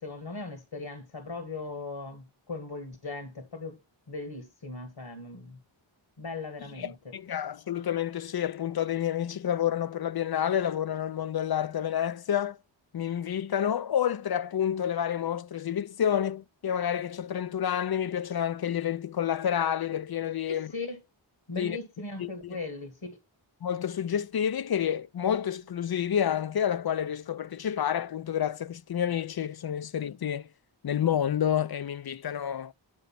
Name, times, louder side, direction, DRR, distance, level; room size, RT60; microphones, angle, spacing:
voice 1, 0.0-3.8 4.1-5.6 6.2-7.1 20.5-21.0 21.5-23.2, left 3 dB, 75° left, 1.9 m, -38 dB
voice 2, 6.8-12.6 12.9-20.7 21.6-21.8 22.2-22.6 23.6-30.5 30.8-32.7, left 9 dB, 55° left, 0.5 m, -29 dB
9.6 x 4.0 x 5.8 m
wide cardioid pair, 45°, 46 cm